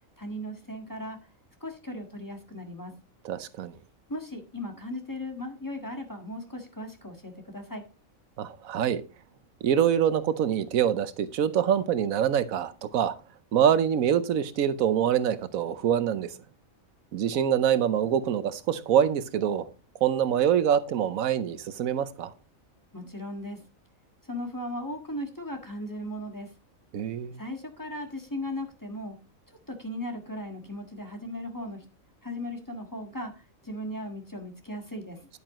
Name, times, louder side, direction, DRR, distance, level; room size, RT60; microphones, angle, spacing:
voice 1, 0.2-1.2 1.6-3.0 4.1-7.8 22.9-23.6 24.2-26.5 27.4-29.2 29.7-31.9 32.2-35.2, left 1 dB, 15° left, 1.5 m, -37 dB
voice 2, 3.2-3.7 8.4-9.0 9.6-13.2 13.5-16.3 17.1-19.7 20.0-22.3 26.9-27.4, right 9 dB, 85° right, 1.2 m, -25 dB
10.0 x 8.8 x 3.0 m
omnidirectional pair, 1.4 m